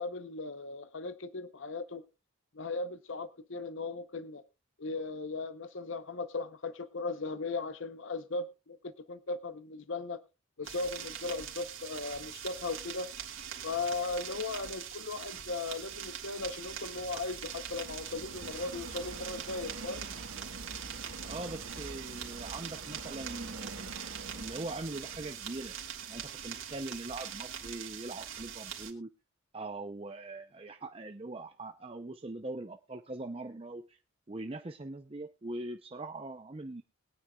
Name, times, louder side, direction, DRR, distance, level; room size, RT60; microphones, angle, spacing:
voice 1, 0.0-2.0 2.5-4.4 4.8-10.2 10.6-13.1 13.6-20.1, left 3 dB, 65° left, 12 dB, 0.8 m, -37 dB
sound 1, 10.6-28.9, right 9 dB, 65° right, 3.1 m, -43 dB
Subway metro underground, 15.2-26.5, right 2 dB, 85° right, 2.1 m, -47 dB
voice 2, 21.2-24.0 24.3-25.7 26.1-29.1 29.5-34.0 34.3-36.8, right 2 dB, 25° right, 7 dB, 0.6 m, -41 dB
21.5 x 9.7 x 2.3 m, 0.28 s
head